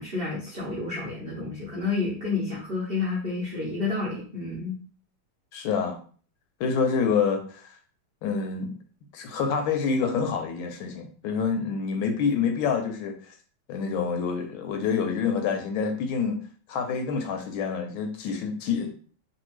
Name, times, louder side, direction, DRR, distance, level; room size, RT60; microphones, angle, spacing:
voice 1, 0.0-4.8, left 4 dB, 75° right, -6 dB, 0.5 m, -30 dB
voice 2, 5.5-6.0 6.6-7.7 8.2-8.7 9.1-13.3 13.7-16.4 16.7-18.9, left 6 dB, 80° left, 6 dB, 1.4 m, -27 dB
3.3 x 2.3 x 3.1 m, 0.43 s
omnidirectional pair, 2.2 m